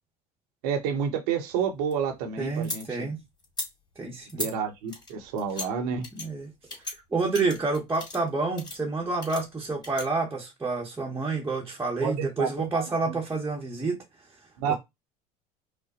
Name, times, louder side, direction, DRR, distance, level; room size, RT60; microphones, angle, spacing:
voice 1, 0.6-3.1 4.4-6.1 12.0-13.1 14.6-14.7, right 7 dB, 65° right, 1.0 m, -30 dB
sound 1, 1.5-2.8 3.4-3.7 4.3-4.5 4.9-5.7 6.0-6.3 6.7-6.9 7.3-8.3 8.6-8.8 9.2-10.0, left 2 dB, 20° left, 2.2 m, -37 dB
voice 2, 2.4-3.2 4.0-4.5 6.1-6.5 6.8-14.0 14.7-14.8, right 3 dB, 10° right, 1.0 m, -29 dB
5.0 x 2.1 x 2.9 m
hypercardioid pair, 70°, 21 cm